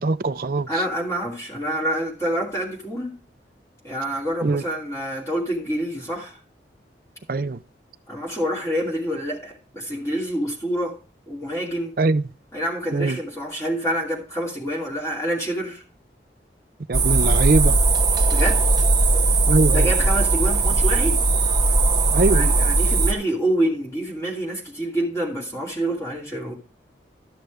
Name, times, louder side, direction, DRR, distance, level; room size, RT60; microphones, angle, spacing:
voice 1, 0.0-0.7 4.4-4.6 7.3-7.6 12.0-12.2 12.9-13.2 16.9-17.8 19.5-19.9 22.1-22.5, right 3 dB, 50° right, 0.5 m, -21 dB
voice 2, 0.7-3.1 3.8-6.4 8.1-10.9 11.3-11.9 12.5-15.8 18.3-18.6 19.7-21.2 22.3-26.6, right 1 dB, 15° left, 2.5 m, -27 dB
sound 1, 16.9-23.1, right 3 dB, 25° right, 0.8 m, -18 dB
12.5 x 6.6 x 3.4 m
head